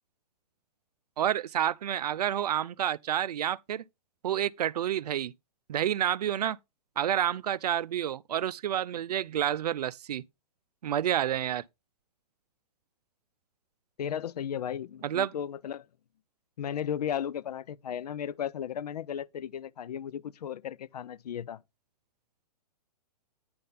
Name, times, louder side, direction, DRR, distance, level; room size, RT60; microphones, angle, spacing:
voice 1, 1.2-3.8 4.2-5.3 5.7-6.6 7.0-10.2 10.8-11.6 15.0-15.3, right 10 dB, 80° right, 0.5 m, -29 dB
voice 2, 14.0-15.9 16.6-21.6, left 9 dB, 80° left, 0.6 m, -35 dB
9.6 x 3.6 x 5.6 m
hypercardioid pair, 155°, 20 cm